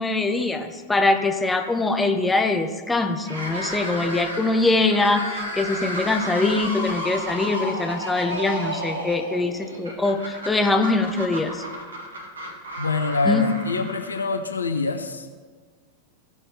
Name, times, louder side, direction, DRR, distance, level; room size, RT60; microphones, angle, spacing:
voice 1, 0.0-11.6 13.2-13.4, left 3 dB, 10° left, 4 dB, 0.8 m, -23 dB
sound 1, 3.2-14.5, equal, 70° right, 1.7 m, -32 dB
voice 2, 12.8-15.4, left 3 dB, 75° left, 6 dB, 0.7 m, -25 dB
16.0 x 5.5 x 3.3 m, 1.5 s
figure-of-eight pair, 90°, 0 cm